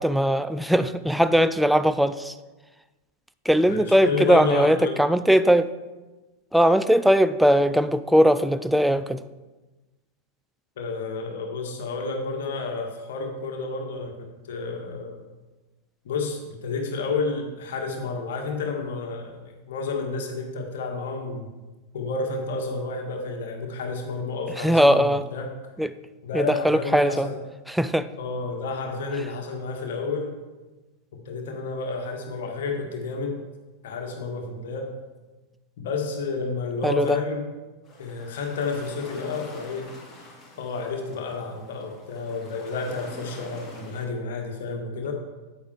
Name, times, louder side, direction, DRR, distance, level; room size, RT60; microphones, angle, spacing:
voice 1, 0.0-2.3 3.5-5.7 6.5-9.2 24.6-25.2 25.8-25.9 26.3-27.3 27.8-28.1 36.8-37.2, equal, ahead, 12 dB, 0.3 m, -20 dB
voice 2, 3.7-5.0 10.8-15.2 16.0-21.5 21.9-25.6 26.2-27.4 28.2-30.4 31.2-33.4 33.8-34.9 35.8-37.5 38.0-39.9 40.6-45.1, left 4 dB, 55° left, 3 dB, 1.4 m, -30 dB
sound 1, 37.8-44.1, left 2 dB, 20° left, 3.0 m, -45 dB
9.1 x 8.6 x 3.3 m, 1.2 s
figure-of-eight pair, 90°, 0 cm